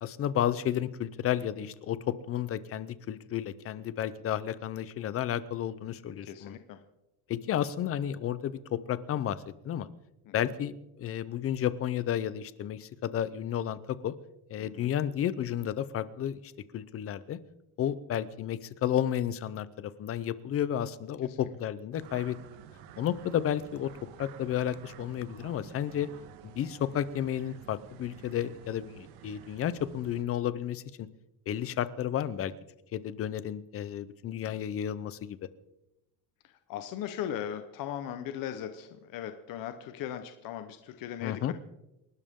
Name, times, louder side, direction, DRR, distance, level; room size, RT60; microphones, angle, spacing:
voice 1, 0.0-6.6 7.3-9.9 10.3-14.1 14.5-17.4 17.8-22.4 23.0-23.9 24.2-26.1 26.4-31.1 31.5-32.5 32.9-35.4 41.2-41.5, left 10 dB, 30° left, 16 dB, 0.7 m, -32 dB
voice 2, 6.2-6.8 10.3-10.4 14.6-14.9 21.2-21.4 34.4-34.6 36.4-41.5, left 10 dB, 45° left, 8 dB, 1.1 m, -38 dB
sound 1, 21.9-30.2, right 9 dB, 90° right, 1.7 m, -51 dB
28.5 x 12.5 x 3.7 m, 0.94 s
cardioid pair, 165°, 45 cm